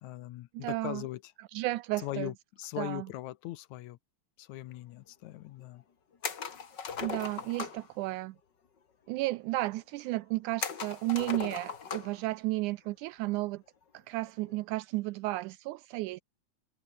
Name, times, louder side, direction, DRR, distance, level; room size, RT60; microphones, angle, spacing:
voice 1, 0.0-1.3 2.0-4.0 4.4-5.8, left 15 dB, 75° left, 2.0 m, -40 dB
voice 2, 0.5-1.0 1.4-2.3 2.8-3.1 7.0-8.4 9.1-13.6 13.9-16.2, right 19 dB, 80° right, 2.0 m, -33 dB
sound 1, 6.2-7.9 10.6-12.2 12.6-12.7 14.3-14.6, left 6 dB, 40° left, 2.3 m, -38 dB
omnidirectional pair, 3.6 m